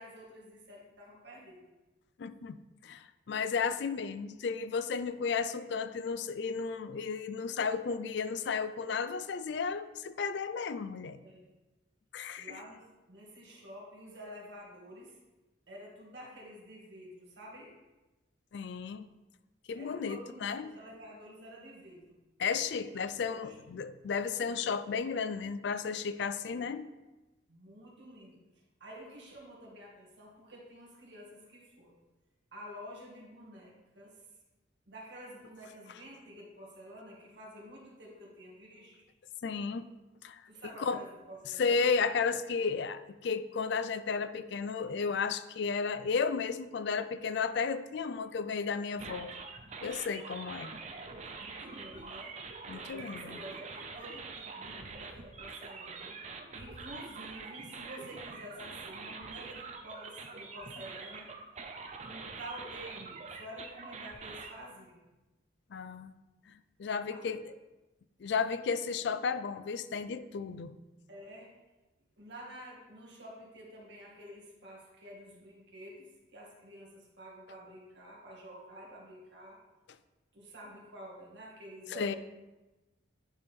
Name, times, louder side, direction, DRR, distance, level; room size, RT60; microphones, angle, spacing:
voice 1, 0.0-1.7 11.2-11.5 12.4-15.2 15.7-17.7 19.8-22.1 22.8-23.5 26.5-26.7 27.5-28.4 28.8-32.0 32.5-34.2 34.9-39.0 40.5-41.9 51.4-52.4 52.8-56.2 56.5-61.3 62.0-65.0 67.1-67.4 71.1-71.5 72.2-79.6 80.3-82.2, equal, 65° right, -4 dB, 2.0 m, -49 dB
voice 2, 2.2-11.2 12.1-12.6 18.5-19.1 19.7-20.7 22.4-26.9 39.4-39.9 40.2-40.4 40.8-41.0 41.6-49.3 49.8-50.7 52.7-53.4 65.7-66.1 66.8-67.5 68.2-70.7 81.9-82.2, left 5 dB, 60° left, 12 dB, 0.3 m, -33 dB
sound 1, 49.0-64.5, right 4 dB, 35° right, 0.5 m, -45 dB
9.6 x 4.3 x 3.5 m, 1.1 s
head